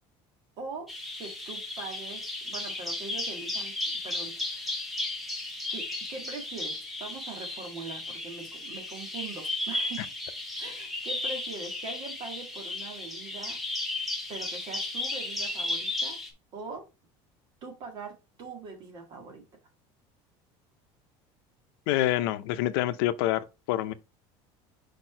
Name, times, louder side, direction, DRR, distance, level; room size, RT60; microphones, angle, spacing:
voice 1, 0.6-0.9 1.2-4.7 5.7-10.1 10.6-13.6 14.3-16.2 16.5-16.9 17.6-19.4, right 4 dB, 35° right, 1.8 m, -42 dB
Bird vocalization bird call bird song, 0.9-16.3, left 2 dB, ahead, 0.9 m, -34 dB
voice 2, 21.9-23.9, left 14 dB, 80° left, 0.6 m, -27 dB
4.9 x 4.5 x 4.4 m
cardioid pair, 180°, 12 cm